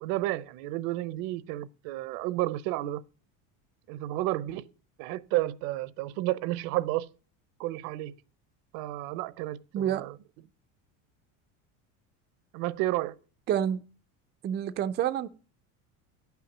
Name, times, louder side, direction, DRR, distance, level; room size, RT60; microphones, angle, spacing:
voice 1, 0.0-3.0 3.9-4.6 5.0-7.1 7.6-8.1 8.7-10.1 12.5-13.2, right 16 dB, 70° right, 0.7 m, -31 dB
voice 2, 9.7-10.1 13.5-13.8 14.4-15.3, right 10 dB, 30° right, 0.4 m, -28 dB
9.3 x 5.8 x 7.2 m
cardioid pair, 140°, 39 cm